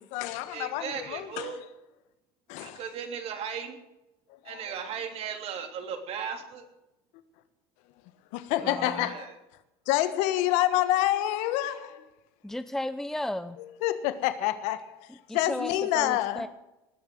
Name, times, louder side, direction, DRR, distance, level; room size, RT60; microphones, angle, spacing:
voice 1, 0.0-1.5 2.5-2.8 4.5-4.7 8.3-9.3 9.9-12.0 13.8-16.4, left 14 dB, 70° left, 1.4 m, -28 dB
voice 2, 0.5-1.6 2.6-3.8 4.4-6.6 8.6-9.3, right 7 dB, 55° right, 3.1 m, -37 dB
voice 3, 8.6-9.2 12.4-13.6 15.3-16.5, left 1 dB, 5° left, 0.7 m, -34 dB
19.5 x 7.0 x 7.8 m
supercardioid pair, 100°, 13 cm